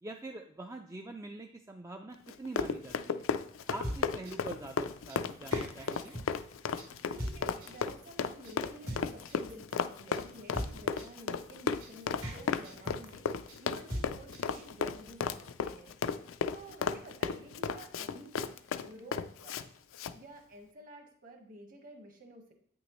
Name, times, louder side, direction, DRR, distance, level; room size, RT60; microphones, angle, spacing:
voice 1, 0.0-3.3 3.7-6.2, right 2 dB, 15° right, 3 dB, 0.3 m, -44 dB
Run, 2.3-19.6 19.9-20.1, left 6 dB, 75° left, 0.4 m, -34 dB
sound 1, 3.6-14.6, equal, 80° right, 2.6 m, -41 dB
voice 2, 7.0-13.3 13.6-18.5 18.8-19.7 20.1-22.5, right 1 dB, 40° right, 3 dB, 1.3 m, -52 dB
8.9 x 6.1 x 3.0 m, 0.63 s
head